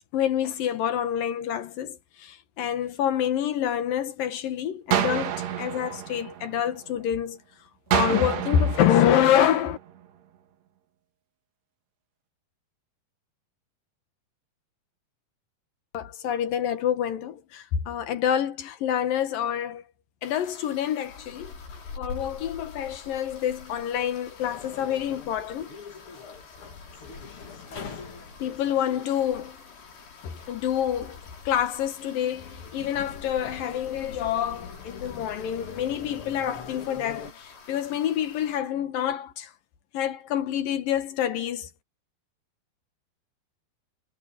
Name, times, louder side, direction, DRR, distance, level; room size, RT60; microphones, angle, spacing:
voice 1, 0.1-7.4 7.9-9.8 15.9-19.8 20.2-21.5 22.0-25.7 28.4-29.6 30.2-31.2 31.5-39.5 39.9-41.7, left 10 dB, 65° left, 2.8 m, -27 dB
sound 1, 4.9-7.0 7.9-10.0, right 10 dB, 75° right, 4.1 m, -29 dB
sound 2, 20.2-38.6, left 4 dB, 85° left, 8.5 m, -46 dB
sound 3, 21.1-37.3, left 5 dB, 40° left, 2.5 m, -46 dB
omnidirectional pair, 4.8 m